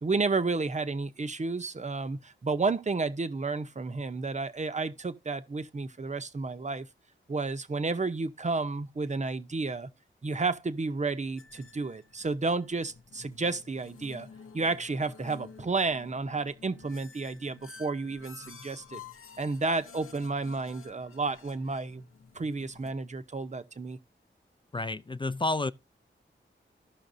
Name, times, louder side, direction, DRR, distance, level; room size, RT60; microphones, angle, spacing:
voice 1, 0.0-6.9 7.3-9.9 10.2-14.3 14.5-19.0 19.4-22.0 22.3-24.0, right 3 dB, 35° right, 0.7 m, -31 dB
sound 1, 11.4-22.9, left 5 dB, 85° left, 0.8 m, -51 dB
voice 2, 24.7-25.7, left 2 dB, 25° left, 0.4 m, -30 dB
15.5 x 5.8 x 2.6 m
wide cardioid pair, 75°, 21 cm